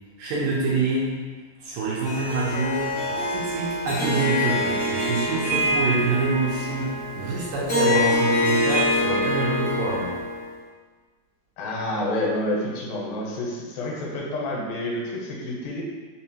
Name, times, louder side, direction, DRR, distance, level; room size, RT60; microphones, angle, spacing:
voice 1, 0.2-1.1 1.6-10.2, right 3 dB, 80° right, -5 dB, 2.0 m, -26 dB
Harp, 2.0-10.5, left 1 dB, 60° left, 0.8 m, -25 dB
voice 2, 11.6-15.8, left 1 dB, 85° left, -3 dB, 2.3 m, -28 dB
5.5 x 2.1 x 2.7 m, 1.5 s
omnidirectional pair, 4.1 m